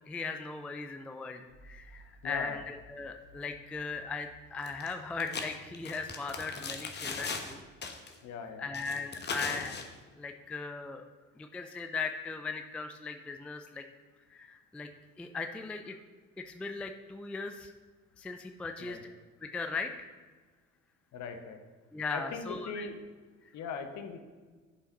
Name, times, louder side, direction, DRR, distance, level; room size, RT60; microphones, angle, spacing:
voice 1, 0.1-7.6 8.6-9.8 10.2-11.0 11.4-13.8 14.3-14.9 15.2-16.0 16.4-17.7 18.2-19.0 19.4-20.1 21.9-22.9, left 4 dB, 5° left, 6 dB, 0.3 m, -38 dB
sound 1, 1.5-7.8, right 1 dB, 70° left, 2.2 m, -58 dB
voice 2, 2.0-2.6 8.2-8.7 18.8-19.0 21.1-21.6 22.1-23.0 23.5-24.2, left 5 dB, 45° left, 7 dB, 1.0 m, -40 dB
sound 2, 4.7-4.9 5.2-7.6 7.8-8.2 8.7-9.9, left 4 dB, 25° left, 1.0 m, -38 dB
11.0 x 5.6 x 3.0 m, 1.4 s
figure-of-eight pair, 55°, 38 cm